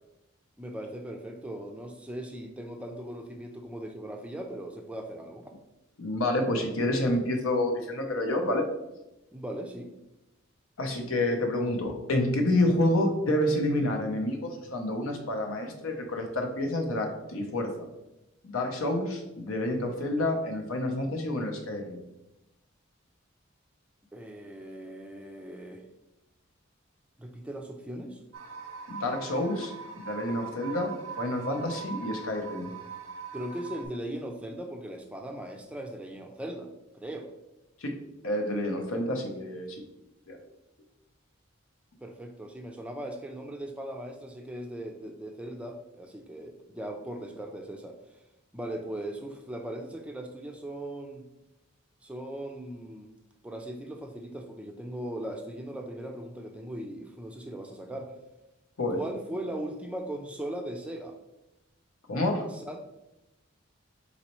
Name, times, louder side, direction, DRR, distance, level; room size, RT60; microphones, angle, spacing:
voice 1, 0.6-5.5 9.3-9.9 24.1-25.8 27.2-28.2 33.3-36.7 36.9-37.3 42.0-48.0 48.5-51.2 52.0-53.1 53.4-58.1 58.9-61.2 62.5-62.8, right 1 dB, 5° right, 4 dB, 0.3 m, -39 dB
voice 2, 6.0-8.7 10.8-17.9 18.4-22.0 28.9-32.7 37.8-37.9 38.2-39.8 40.3-40.4 58.8-59.0 62.1-62.5, left 1 dB, 90° left, 3 dB, 0.8 m, -28 dB
sound 1, 28.3-33.9, right 5 dB, 90° right, 0.5 m, -41 dB
4.1 x 4.0 x 3.0 m, 0.95 s
head